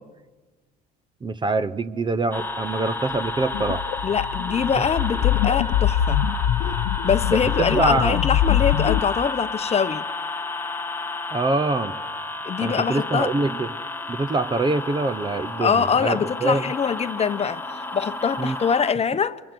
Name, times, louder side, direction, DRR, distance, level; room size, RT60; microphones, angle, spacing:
voice 1, 1.2-3.8 4.7-4.8 7.3-8.2 11.3-12.0 12.6-13.7 14.1-16.7 18.4-18.6, right 3 dB, 25° right, 0.9 m, -24 dB
sound 1, 2.3-18.9, left 2 dB, 10° left, 1.3 m, -31 dB
sound 2, 3.2-9.0, left 12 dB, 80° left, 0.9 m, -23 dB
voice 2, 4.0-6.2 7.0-10.1 12.4-13.3 15.6-19.4, left 6 dB, 35° left, 0.9 m, -24 dB
29.0 x 23.5 x 6.2 m
supercardioid pair, 90°, 19 cm